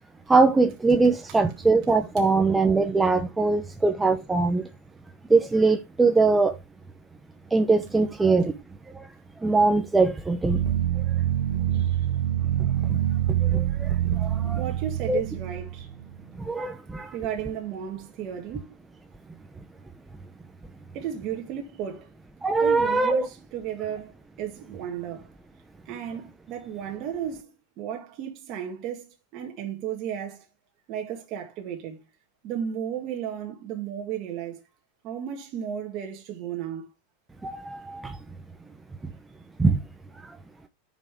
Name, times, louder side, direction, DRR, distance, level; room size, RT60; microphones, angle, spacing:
voice 1, 0.3-4.7 5.3-6.6 7.5-8.6 8.9-9.1 9.4-10.6 11.0-11.1 12.6-13.0 13.4-14.6 15.1-15.2 16.4-17.1 22.4-23.3 37.4-38.2 39.6-39.8 40.3-40.4, right 3 dB, 10° right, 0.7 m, -22 dB
sound 1, 10.5-16.2, right 11 dB, 75° right, 0.7 m, -25 dB
voice 2, 11.7-12.1 14.5-15.9 17.1-18.8 20.9-22.1 22.6-24.1 24.4-25.3 25.9-27.5 27.8-30.5 30.9-32.0 32.4-34.6 35.0-36.9, right 9 dB, 40° right, 1.8 m, -34 dB
9.9 x 5.6 x 3.6 m
supercardioid pair, 145°, 0 cm